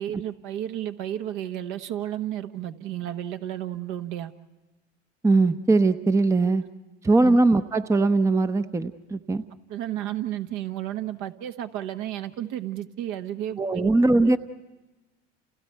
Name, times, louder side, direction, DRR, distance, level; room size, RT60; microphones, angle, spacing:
voice 1, 0.0-4.3 6.4-6.5 7.2-7.4 9.7-13.9 14.2-14.4, right 12 dB, 55° right, 8 dB, 1.3 m, -32 dB
voice 2, 5.2-6.6 7.0-9.4 13.6-14.4, right 3 dB, 10° right, 10 dB, 0.7 m, -20 dB
29.5 x 29.5 x 4.6 m, 1.1 s
hypercardioid pair, 85°, 36 cm